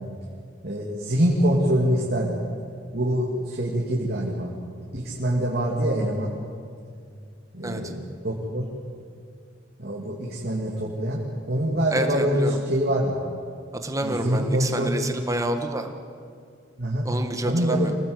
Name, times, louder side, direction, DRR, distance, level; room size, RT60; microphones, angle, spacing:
voice 1, 0.6-2.4 2.9-4.5 4.9-6.3 7.5-8.6 9.8-11.2 11.5-13.2 14.0-15.0 16.8-17.0 17.4-17.9, right 1 dB, 55° right, -3 dB, 2.8 m, -24 dB
voice 2, 11.9-12.6 13.8-15.9 17.0-17.9, right 1 dB, 20° right, 5 dB, 1.5 m, -28 dB
25.5 x 18.0 x 8.1 m, 2.3 s
head